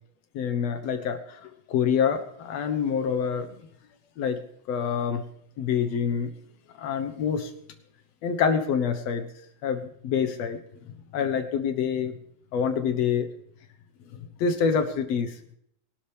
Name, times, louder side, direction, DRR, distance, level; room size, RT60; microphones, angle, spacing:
voice 1, 0.3-3.5 4.2-4.4 4.7-5.2 5.6-6.3 6.8-7.5 8.2-9.3 9.6-10.6 11.1-12.1 12.5-13.3 14.4-15.3, left 7 dB, 65° left, 7 dB, 2.2 m, -26 dB
22.0 x 12.5 x 3.4 m, 0.70 s
omnidirectional pair, 3.4 m